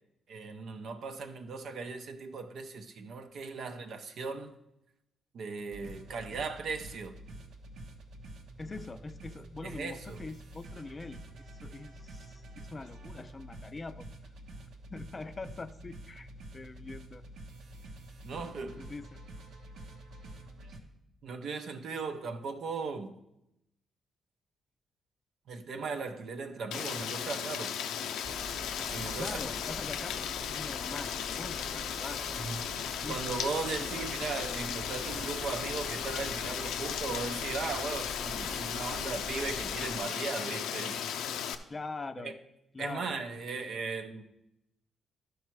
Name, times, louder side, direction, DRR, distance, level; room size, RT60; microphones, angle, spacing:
voice 1, 0.3-4.5 5.3-7.1 9.6-10.2 18.2-18.8 21.2-23.1 25.5-27.8 28.9-29.4 32.4-41.0 42.2-42.4 42.8-44.2, right 4 dB, 70° right, 0.8 m, -38 dB
sound 1, 5.7-20.8, right 1 dB, 85° right, 1.2 m, -48 dB
voice 2, 8.6-14.3 14.9-17.2 18.8-19.2 29.2-30.2 30.5-32.5 32.8-33.2 33.8-34.1 41.7-42.3 42.7-43.1, left 3 dB, 30° left, 0.5 m, -43 dB
Rain, 26.7-41.5, left 8 dB, 90° left, 0.5 m, -36 dB
sound 2, 28.2-40.0, right 1 dB, 25° right, 0.6 m, -46 dB
12.0 x 4.7 x 4.6 m
cardioid pair, 70°, 0 cm